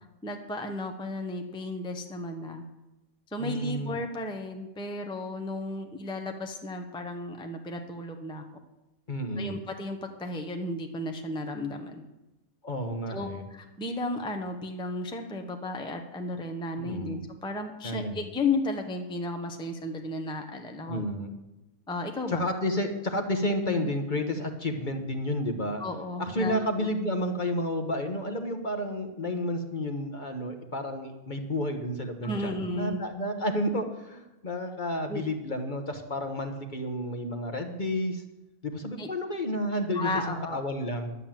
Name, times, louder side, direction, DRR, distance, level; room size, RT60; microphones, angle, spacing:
voice 1, 0.2-2.6 3.3-8.4 9.4-12.0 13.1-21.1 21.9-22.4 23.8-23.9 25.8-26.9 32.2-33.0 35.1-35.2 39.0-39.1 39.9-40.6, left 2 dB, 5° left, 5 dB, 0.8 m, -34 dB
voice 2, 3.4-4.0 9.1-9.5 12.6-13.4 16.8-17.2 17.8-18.2 20.9-21.3 22.3-25.8 26.2-38.2 38.6-41.1, left 1 dB, 35° left, 5 dB, 1.2 m, -31 dB
11.0 x 9.0 x 7.5 m, 0.98 s
omnidirectional pair, 1.5 m